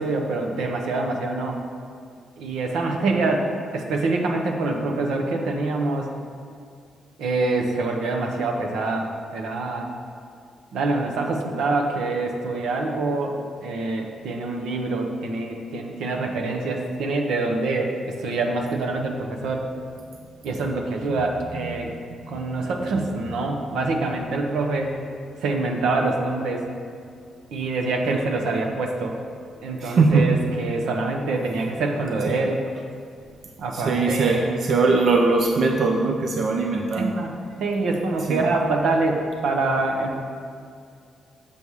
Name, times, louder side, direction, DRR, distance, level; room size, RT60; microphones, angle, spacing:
voice 1, 0.0-1.6 2.4-6.1 7.2-9.9 10.7-19.7 20.4-21.9 22.3-25.0 25.4-26.7 27.5-29.1 29.6-32.6 33.6-34.6 36.9-40.2, right 3 dB, 85° right, 2 dB, 0.8 m, -25 dB
voice 2, 29.8-30.3 32.3-32.4 33.7-37.2 38.3-38.4, right 3 dB, 60° right, 2 dB, 0.5 m, -20 dB
7.0 x 5.5 x 4.7 m, 2.3 s
cardioid pair, 80°, 0 cm